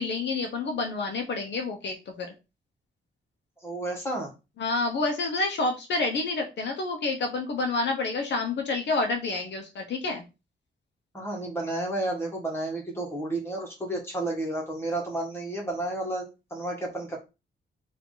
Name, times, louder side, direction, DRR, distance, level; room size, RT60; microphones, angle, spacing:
voice 1, 0.0-2.3 4.6-10.2, left 3 dB, 60° left, 3 dB, 0.9 m, -28 dB
voice 2, 3.6-4.3 11.1-17.2, right 2 dB, 10° left, -1 dB, 1.4 m, -31 dB
4.7 x 2.7 x 3.8 m, 0.27 s
wide cardioid pair, 180°, 20 cm